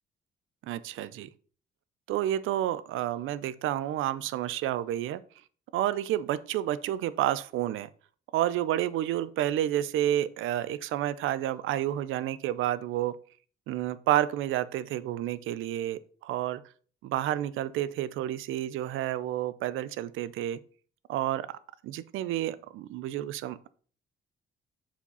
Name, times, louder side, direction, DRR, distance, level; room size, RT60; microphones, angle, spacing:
voice 1, 0.6-1.3 2.1-5.2 5.7-7.9 8.3-13.1 13.7-16.6 17.0-20.6 21.1-21.6 21.8-23.7, right 12 dB, 90° right, 16 dB, 0.6 m, -30 dB
7.1 x 4.4 x 5.4 m, 0.43 s
cardioid pair, 90°, 20 cm